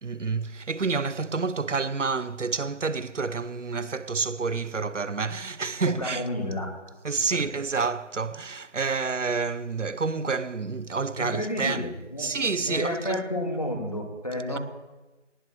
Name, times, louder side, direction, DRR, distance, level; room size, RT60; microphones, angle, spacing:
voice 1, 0.0-6.2 7.0-11.9 12.2-13.2 14.5-14.6, right 4 dB, 80° right, 0.8 m, -29 dB
voice 2, 6.0-6.7 7.3-7.4 11.2-14.6, left 1 dB, 30° left, 2.1 m, -31 dB
20.5 x 18.5 x 3.0 m
figure-of-eight pair, 180°, 36 cm